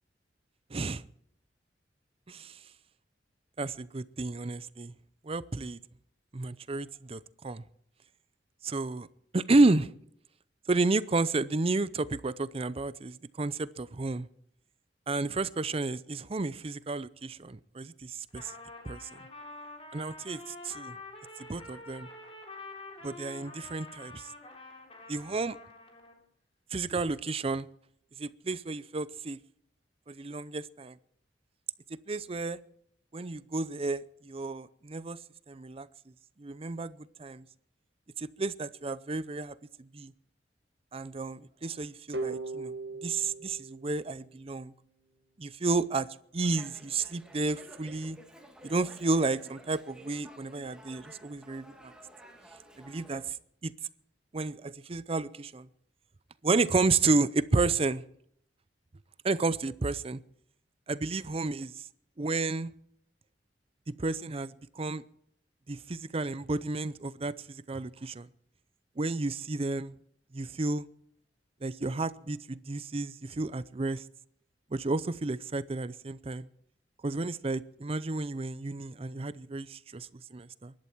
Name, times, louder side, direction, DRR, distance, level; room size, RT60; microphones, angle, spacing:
voice 1, 0.7-1.0 2.3-2.6 3.6-4.9 5.2-5.8 6.3-7.6 8.6-9.1 9.3-9.9 10.7-14.3 15.1-18.5 18.8-19.2 19.9-21.0 21.5-22.1 23.0-24.3 25.1-25.6 26.7-27.7 28.2-29.4 30.1-31.0 32.1-32.6 33.1-35.2 35.5-35.9 36.4-37.4 38.2-40.1 40.9-42.7 43.0-44.7 45.4-46.1 46.3-48.2 48.6-51.9 52.8-53.4 53.6-53.7 54.3-55.7 56.4-58.0 59.2-60.2 60.9-61.7 62.2-62.7 64.0-65.0 65.7-68.3 69.0-70.0 70.3-70.9 71.6-74.0 74.7-76.5 77.0-80.7, right 3 dB, 35° right, 0.6 m, -31 dB
Trumpet, 18.3-26.2, left 2 dB, 35° left, 3.6 m, -47 dB
sound 1, 42.1-44.9, right 3 dB, 70° right, 1.8 m, -39 dB
Dog, 46.4-53.3, equal, 5° right, 2.2 m, -53 dB
23.0 x 11.5 x 4.6 m
head